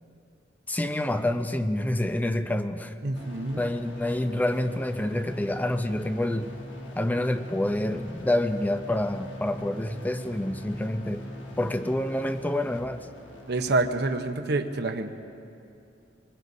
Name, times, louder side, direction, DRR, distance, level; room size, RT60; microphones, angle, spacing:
voice 1, 0.7-2.9 3.6-6.5 7.0-11.3 11.6-13.0, left 1 dB, 10° left, 8 dB, 0.6 m, -27 dB
voice 2, 3.0-3.6 13.5-15.2, right 2 dB, 60° right, 6 dB, 0.9 m, -27 dB
sound 1, 3.1-13.8, left 1 dB, 90° left, 1.8 m, -41 dB
25.0 x 20.5 x 2.7 m, 2.6 s
head